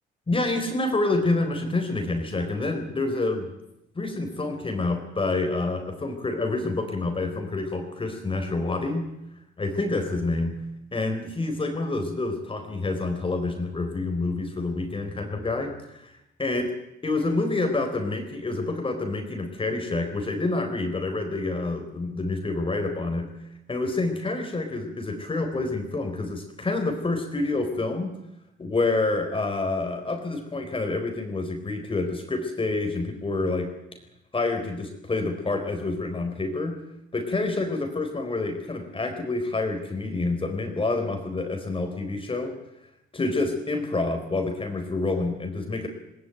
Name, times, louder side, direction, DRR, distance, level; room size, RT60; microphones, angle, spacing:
voice 1, 0.3-3.5 3.9-9.1 9.6-10.6 10.9-16.1 16.4-16.7 17.0-23.3 23.7-28.2 28.6-33.7 34.3-36.8 37.1-42.5 43.1-45.9, left 2 dB, 25° left, 4 dB, 4.4 m, -28 dB
19.5 x 19.0 x 9.4 m, 0.85 s
cardioid pair, 90°, 20 cm